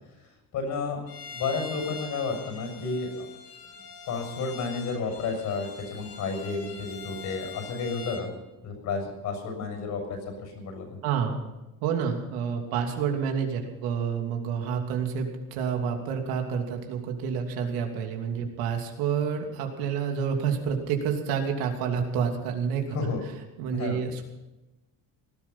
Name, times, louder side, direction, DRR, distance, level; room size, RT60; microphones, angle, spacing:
voice 1, 0.2-1.0 1.3-3.3 4.1-8.3 8.6-11.0 22.9-23.2 23.7-24.0, left 4 dB, 55° left, 4 dB, 6.8 m, -31 dB
Bowed string instrument, 1.1-8.3, left 4 dB, 70° left, 3.5 m, -43 dB
voice 2, 11.0-11.4 11.8-22.8 23.6-24.2, right 7 dB, 80° right, 3 dB, 2.9 m, -29 dB
19.0 x 12.5 x 5.7 m, 1.0 s
cardioid pair, 150°, 36 cm